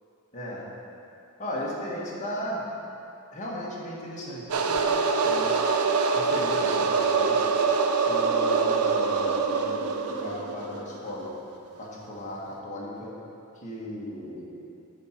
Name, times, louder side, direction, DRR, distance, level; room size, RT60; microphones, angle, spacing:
voice 1, 0.3-0.7 1.4-2.6 3.3-5.5 6.1-7.4 8.1-11.3 11.8-13.2 13.6-14.5, equal, 35° left, -5 dB, 1.5 m, -36 dB
sound 1, 4.5-11.1, right 4 dB, 85° right, 0.5 m, -24 dB
8.8 x 4.4 x 5.9 m, 2.7 s
head